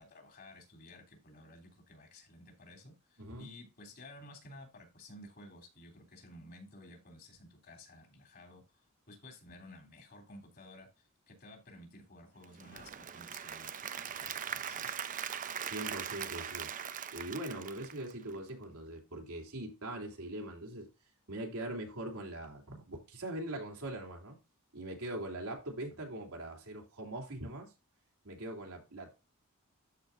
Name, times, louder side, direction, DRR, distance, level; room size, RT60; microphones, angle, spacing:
voice 1, 0.0-15.0, left 1 dB, 45° left, 3.1 m, -54 dB
Applause / Crowd, 12.4-18.5, right 8 dB, 40° right, 0.5 m, -41 dB
voice 2, 15.6-16.7 17.1-20.9 21.3-24.4 24.7-27.7 28.2-29.1, right 1 dB, 80° right, 2.9 m, -42 dB
13.0 x 4.7 x 2.6 m
head